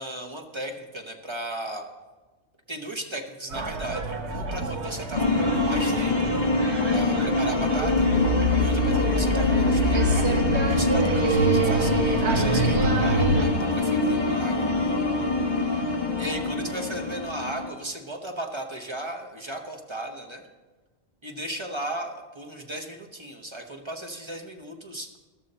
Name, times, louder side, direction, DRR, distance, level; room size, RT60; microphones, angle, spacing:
voice 1, 0.0-1.9 2.7-6.2 6.9-10.4 10.7-14.7 16.2-20.4 21.2-25.1, right 1 dB, 25° right, 3 dB, 1.1 m, -36 dB
sound 1, 3.5-13.5, right 1 dB, 80° right, 1.4 m, -26 dB
sound 2, 5.1-17.7, left 2 dB, 45° left, 1.4 m, -25 dB
13.5 x 12.0 x 4.3 m, 1.2 s
omnidirectional pair, 1.1 m